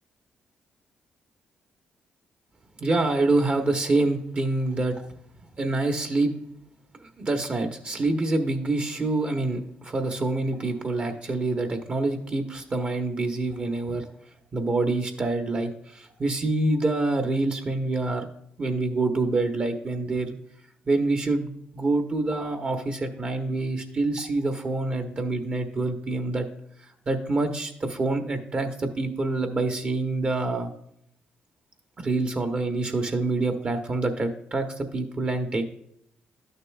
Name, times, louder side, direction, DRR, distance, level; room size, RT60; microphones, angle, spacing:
voice 1, 2.8-5.0 5.6-6.3 7.0-14.0 14.5-18.2 18.6-20.3 20.9-26.5 27.1-30.7 32.0-35.6, right 2 dB, 35° right, 5 dB, 0.9 m, -26 dB
11.5 x 6.7 x 2.3 m, 0.72 s
cardioid pair, 115°, 4 cm